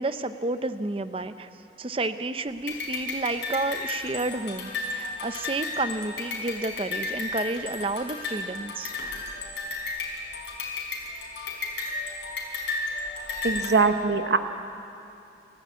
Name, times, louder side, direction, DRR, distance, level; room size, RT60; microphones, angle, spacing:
voice 1, 0.0-1.5 1.8-8.9, right 2 dB, 30° right, 10 dB, 0.6 m, -30 dB
sound 1, 2.7-13.7, left 3 dB, 85° left, 5.0 m, -33 dB
voice 2, 13.4-14.4, right 4 dB, 75° right, 7 dB, 0.9 m, -22 dB
30.0 x 14.0 x 8.3 m, 2.7 s
head